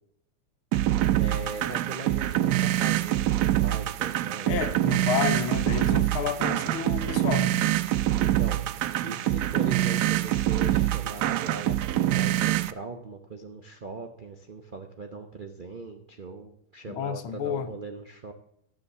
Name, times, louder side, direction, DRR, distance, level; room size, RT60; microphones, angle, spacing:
sound 1, 0.7-12.7, right 13 dB, 90° right, 0.8 m, -25 dB
voice 1, 1.2-4.7 8.2-11.7 12.1-18.3, right 3 dB, 70° right, 5 dB, 0.4 m, -40 dB
voice 2, 4.4-7.5 16.9-17.7, left 8 dB, 70° left, 9 dB, 1.7 m, -30 dB
13.0 x 6.5 x 6.6 m, 0.76 s
omnidirectional pair, 2.4 m